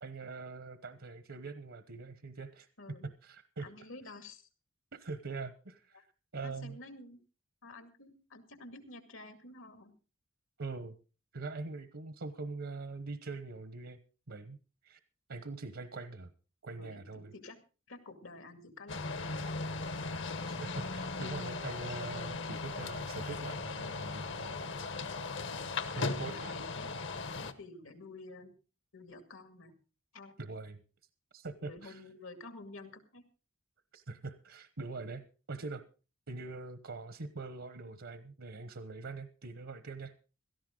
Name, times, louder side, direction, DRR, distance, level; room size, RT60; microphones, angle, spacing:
voice 1, 0.0-2.7 3.2-3.7 4.9-6.0 6.3-6.8 10.6-10.9 11.3-14.0 14.3-14.6 14.8-15.0 15.3-16.3 16.6-17.3 20.4-24.7 25.9-26.5 30.4-30.8 31.3-32.0 33.9-35.2 35.5-35.8 36.3-40.1, right 3 dB, 75° right, 11 dB, 1.1 m, -43 dB
voice 2, 3.6-4.5 5.9-6.0 6.4-7.2 7.6-9.9 16.8-17.6 17.9-19.8 25.4-28.5 28.9-29.7 30.1-30.3 31.6-33.2, left 2 dB, 80° left, 8 dB, 2.3 m, -51 dB
sound 1, 18.9-27.5, left 3 dB, 65° left, 1.2 m, -38 dB
17.0 x 13.5 x 3.9 m, 0.34 s
head